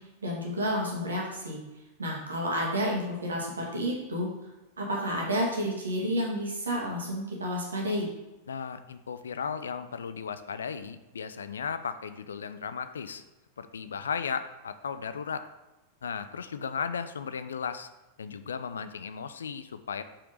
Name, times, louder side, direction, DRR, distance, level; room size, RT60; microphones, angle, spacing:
voice 1, 0.2-1.6 2.0-4.3 4.8-8.1, equal, 75° right, -2 dB, 1.8 m, -30 dB
voice 2, 8.5-13.2 13.6-15.5 16.0-17.9 18.2-20.0, left 6 dB, 70° left, 12 dB, 0.4 m, -35 dB
5.8 x 5.1 x 4.9 m, 1.0 s
figure-of-eight pair, 90°, 0 cm